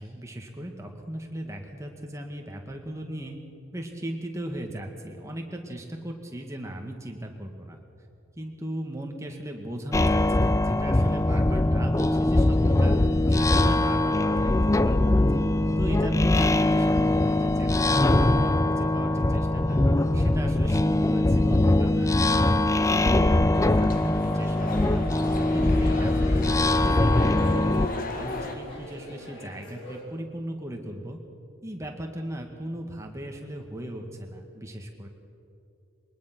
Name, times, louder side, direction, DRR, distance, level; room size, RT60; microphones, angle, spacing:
voice 1, 0.0-3.4 3.7-7.8 8.4-13.0 13.3-15.2 15.8-19.8 20.1-22.1 22.8-25.1 25.5-31.2 31.6-35.1, right 1 dB, 15° right, 2 dB, 1.8 m, -37 dB
sound 1, 9.9-27.9, left 2 dB, 15° left, 0.4 m, -22 dB
sound 2, 23.5-28.6, left 2 dB, 45° left, 1.5 m, -36 dB
sound 3, 24.1-30.0, left 1 dB, 85° left, 4.1 m, -43 dB
22.0 x 19.5 x 6.0 m, 2.7 s
head